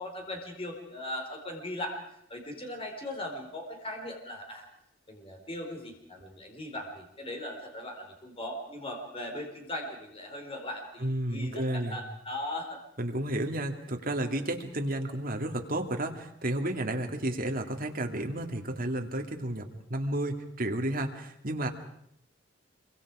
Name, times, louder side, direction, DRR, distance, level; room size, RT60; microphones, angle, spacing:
voice 1, 0.0-2.0 2.3-4.7 5.1-12.8, left 1 dB, 30° left, 2 dB, 4.6 m, -39 dB
voice 2, 11.0-12.0 13.0-21.7, right 1 dB, 50° right, 4 dB, 2.3 m, -32 dB
26.0 x 24.0 x 4.9 m, 0.74 s
head